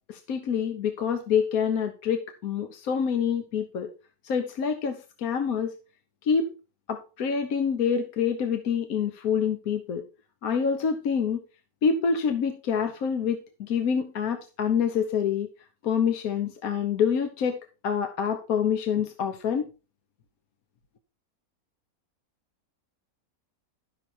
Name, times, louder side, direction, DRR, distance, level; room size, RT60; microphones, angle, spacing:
voice 1, 0.1-3.9 4.2-5.8 6.2-6.5 6.9-10.0 10.4-11.4 11.8-15.5 15.8-17.6 17.8-19.7, left 7 dB, 75° left, 7 dB, 1.4 m, -26 dB
11.5 x 6.3 x 4.3 m, 0.32 s
omnidirectional pair, 1.6 m